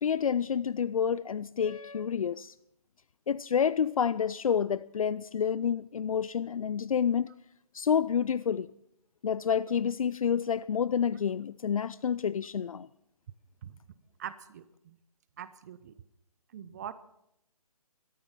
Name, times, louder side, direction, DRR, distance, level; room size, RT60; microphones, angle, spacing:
voice 1, 0.0-2.5 3.3-7.3 7.7-8.7 9.2-12.9, left 7 dB, 65° left, 18 dB, 0.4 m, -29 dB
voice 2, 14.2-15.0 15.4-16.0 16.5-16.9, right 9 dB, 30° right, 14 dB, 0.6 m, -43 dB
15.5 x 13.5 x 5.7 m, 0.78 s
figure-of-eight pair, 145°, 19 cm